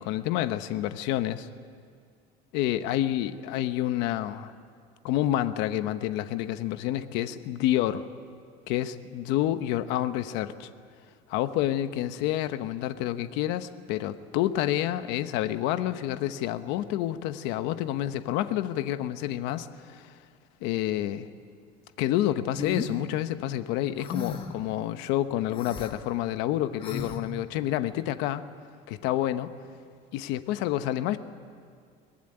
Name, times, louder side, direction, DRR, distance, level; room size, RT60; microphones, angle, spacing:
voice 1, 0.0-1.5 2.5-4.5 5.0-8.0 8.7-10.7 11.3-20.1 20.6-21.3 22.0-28.5 28.9-29.5 30.1-31.2, left 13 dB, 90° left, 11 dB, 1.0 m, -28 dB
sound 1, 22.6-22.9 24.0-24.6 25.5-25.9 26.8-27.2, left 5 dB, 30° left, 1.8 m, -34 dB
23.0 x 20.0 x 9.9 m, 2.2 s
cardioid pair, 165°, 18 cm